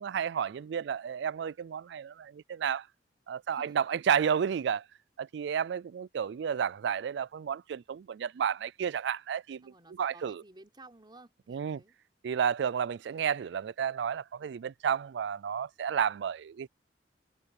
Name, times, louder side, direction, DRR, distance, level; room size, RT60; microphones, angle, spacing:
voice 1, 0.0-2.9 3.3-4.8 5.2-9.7 10.0-10.4 11.5-11.8 12.2-16.7, right 7 dB, 70° right, 0.3 m, -31 dB
voice 2, 9.6-11.9, right 2 dB, 25° right, 4.1 m, -55 dB
head